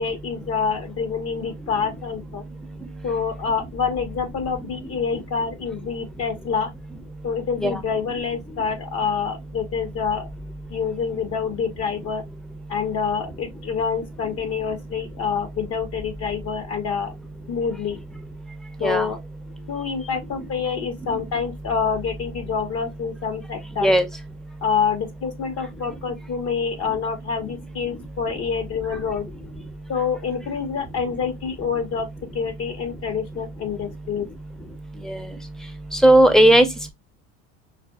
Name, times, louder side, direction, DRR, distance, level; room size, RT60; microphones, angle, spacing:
voice 1, 0.0-2.4 3.0-6.7 7.2-10.3 10.7-12.2 12.7-17.1 17.5-18.0 18.8-19.2 19.7-23.9 24.6-29.3 29.9-32.1 32.3-34.3, left 6 dB, 45° left, 1.0 m, -27 dB
voice 2, 35.9-36.7, right 1 dB, ahead, 0.7 m, -15 dB
5.0 x 2.2 x 2.3 m
supercardioid pair, 90°, 33 cm